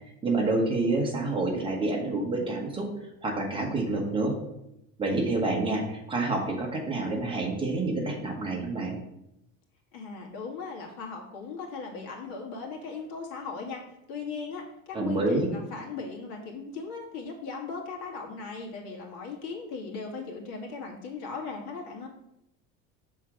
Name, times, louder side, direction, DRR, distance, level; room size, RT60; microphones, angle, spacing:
voice 1, 0.2-2.9 3.2-4.3 5.0-9.0 14.9-15.5, right 2 dB, 15° right, 0 dB, 1.0 m, -28 dB
voice 2, 9.9-13.8 14.1-22.1, left 4 dB, 70° left, 0 dB, 2.0 m, -38 dB
6.5 x 3.8 x 6.0 m, 0.84 s
cardioid pair, 175°, 34 cm